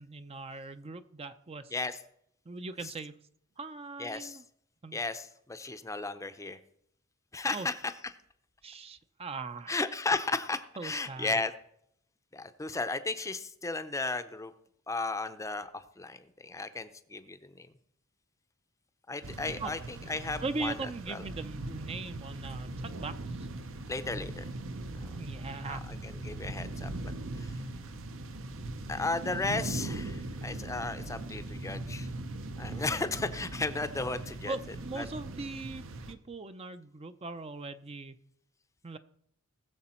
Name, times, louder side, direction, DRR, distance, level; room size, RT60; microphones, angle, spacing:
voice 1, 0.0-1.8 2.5-3.2 3.6-4.4 4.8-5.0 7.5-7.7 8.6-9.8 10.8-11.4 19.6-19.7 20.4-23.5 25.2-25.9 34.5-38.2 38.8-39.0, right 3 dB, 30° right, 10 dB, 0.5 m, -40 dB
voice 2, 4.0-4.4 4.9-6.6 7.3-7.9 9.7-11.5 12.3-14.5 14.9-17.7 19.1-20.7 21.1-21.2 23.9-24.5 25.0-25.2 25.6-27.6 28.9-32.1 32.6-34.5 35.0-35.1, left 3 dB, 15° left, 11 dB, 0.6 m, -35 dB
sound 1, 19.2-36.1, right 2 dB, 65° right, 0.8 m, -40 dB
19.5 x 7.0 x 4.3 m, 0.71 s
head